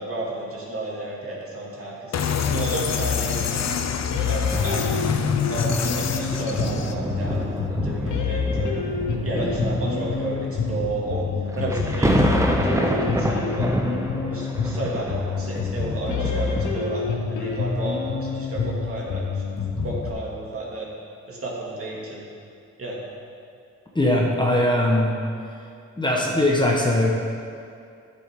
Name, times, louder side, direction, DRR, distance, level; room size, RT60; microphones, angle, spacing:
voice 1, 0.0-2.1 2.5-3.6 4.3-5.1 5.5-8.8 9.2-11.3 11.5-12.2 12.5-13.7 14.2-19.2 19.5-20.9 21.3-22.3 22.8-23.0, right 2 dB, 45° right, -5 dB, 2.5 m, -32 dB
sound 1, 2.1-6.9, left 7 dB, 60° left, 0.7 m, -26 dB
sound 2, 4.1-20.1, left 5 dB, 80° left, 1.1 m, -27 dB
sound 3, 4.5-17.3 17.9-18.1, right 1 dB, 10° right, 0.7 m, -28 dB
voice 2, 23.9-25.1 26.0-27.1, left 1 dB, 15° left, -3 dB, 1.3 m, -20 dB
10.5 x 7.7 x 3.8 m, 2.4 s
cardioid pair, 70°, 30 cm